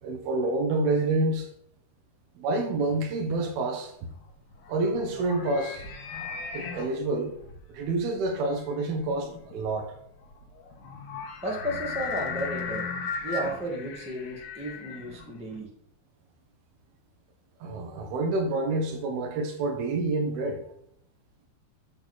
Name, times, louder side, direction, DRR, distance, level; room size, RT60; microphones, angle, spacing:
voice 1, 0.0-1.5 2.4-3.9 4.7-5.8 6.5-7.3 7.7-9.9 17.6-20.6, right 2 dB, 75° right, 2.9 m, -28 dB
sound 1, 4.1-15.6, left 5 dB, 80° left, 3.5 m, -37 dB
voice 2, 11.4-12.9 13.2-15.7, right 1 dB, 5° right, 0.6 m, -33 dB
11.0 x 4.0 x 6.3 m
omnidirectional pair, 4.6 m